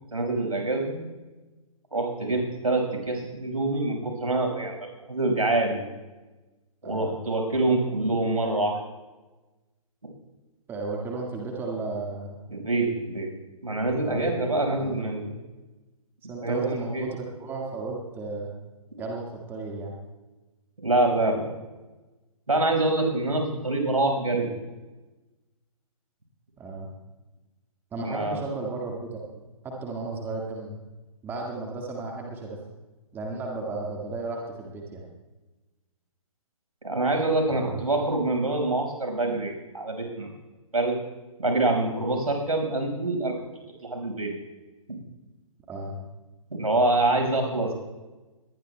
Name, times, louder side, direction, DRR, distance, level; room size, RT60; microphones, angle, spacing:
voice 1, 0.1-1.0 1.9-5.9 6.8-8.8 12.5-13.3 13.6-15.3 16.4-17.1 20.8-21.5 22.5-24.5 28.0-28.4 36.8-40.3 40.7-41.0 41.4-43.4 43.8-44.3 44.9-45.0 46.5-47.7, right 2 dB, 80° right, 2 dB, 5.2 m, -25 dB
voice 2, 6.8-7.1 10.7-12.4 14.0-14.3 14.6-15.0 16.3-18.5 19.0-19.9 26.6-26.9 27.9-29.2 29.6-30.8 31.2-32.6 33.1-35.0 37.5-37.8 45.7-46.0, right 3 dB, 10° right, -1 dB, 1.8 m, -34 dB
22.5 x 19.0 x 2.2 m, 1.1 s
figure-of-eight pair, 130°, 18 cm